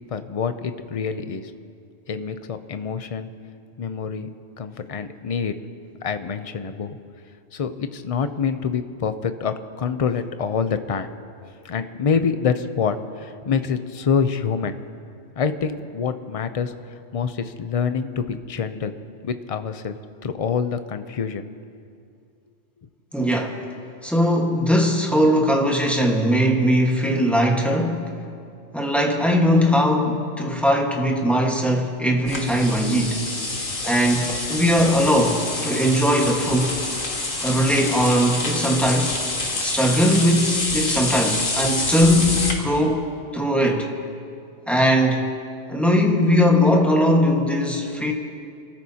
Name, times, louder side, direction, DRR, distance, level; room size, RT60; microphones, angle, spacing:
voice 1, 0.1-1.5 2.1-3.3 3.8-4.3 4.6-5.5 6.0-7.0 7.5-11.1 11.4-14.8 15.4-19.0 19.2-21.5, left 6 dB, 45° left, 10 dB, 0.4 m, -26 dB
voice 2, 23.1-23.5 24.0-28.1 28.7-33.3 33.8-36.8 37.4-39.1 39.6-43.1 43.3-43.9 44.7-45.3 45.7-48.1, equal, ahead, 0 dB, 1.4 m, -20 dB
sound 1, 32.3-42.5, left 2 dB, 85° left, 2.1 m, -27 dB
29.5 x 13.5 x 2.9 m, 2.4 s
omnidirectional pair, 1.3 m